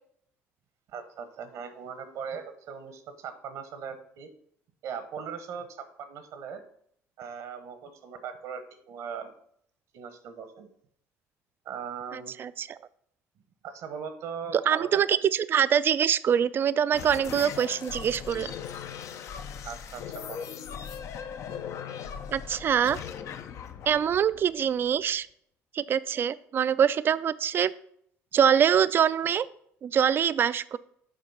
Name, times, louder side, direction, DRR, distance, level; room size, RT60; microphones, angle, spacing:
voice 1, 0.9-4.3 4.8-6.6 7.2-9.3 9.9-10.7 11.6-12.3 13.6-15.0 19.6-20.5, right 7 dB, 70° right, 9 dB, 1.1 m, -39 dB
voice 2, 12.1-12.7 14.7-18.5 22.3-23.0 23.9-25.3 25.7-27.7 28.3-29.5 29.8-30.8, right 8 dB, 40° right, 16 dB, 0.3 m, -24 dB
sound 1, 16.9-25.1, left 8 dB, 60° left, 0.7 m, -39 dB
7.4 x 4.3 x 5.6 m, 0.67 s
cardioid pair, 100°, 6 cm